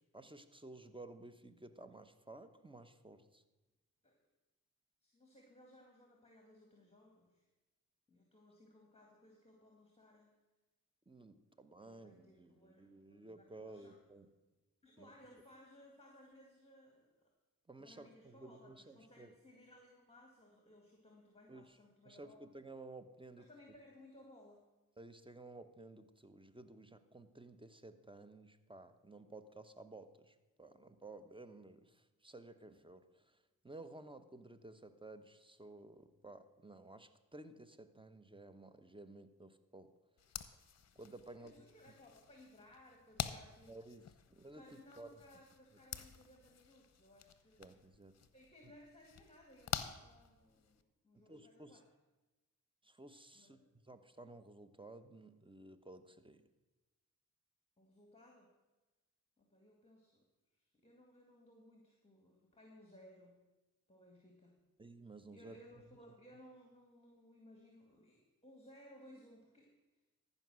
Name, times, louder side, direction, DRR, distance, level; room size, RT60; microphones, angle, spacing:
voice 1, 0.0-3.4 11.1-14.3 15.0-15.1 17.7-19.3 21.5-21.8 22.1-23.5 25.0-39.9 40.9-41.6 43.7-45.2 47.6-48.2 51.1-51.8 52.8-53.6 53.8-56.4 64.8-65.6, right 2 dB, 15° right, 11 dB, 0.9 m, -55 dB
voice 2, 5.0-7.5 8.1-10.3 11.8-14.0 14.8-17.3 17.8-22.4 23.4-24.6 41.3-43.8 44.6-47.7 48.2-51.8 53.3-53.6 57.8-58.5 59.4-60.3 60.5-63.4 63.9-64.6 65.3-70.0, left 1 dB, 15° left, 1 dB, 2.0 m, -61 dB
sound 1, 40.2-50.8, left 8 dB, 45° left, 0.8 m, -48 dB
13.5 x 5.5 x 6.2 m, 1.1 s
cardioid pair, 50°, 36 cm